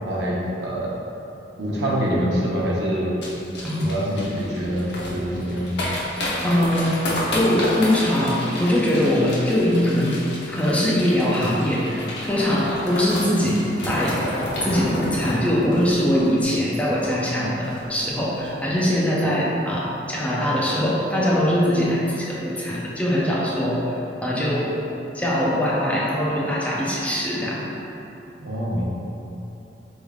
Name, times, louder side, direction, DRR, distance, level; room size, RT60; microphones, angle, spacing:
voice 1, 0.0-0.9 1.6-3.1 3.8-5.9 28.4-28.8, equal, 75° right, -5 dB, 0.9 m, -25 dB
sound 1, 3.2-17.0 17.3-17.4 17.6-18.0 18.3-18.5, left 1 dB, 75° left, 0.8 m, -31 dB
voice 2, 3.6-3.9 6.4-7.0 7.3-10.2 10.5-13.6 13.8-14.2 14.6-23.9 24.2-24.8 25.1-27.7, equal, 10° left, -6 dB, 0.5 m, -22 dB
4.1 x 3.6 x 3.5 m, 2.9 s
head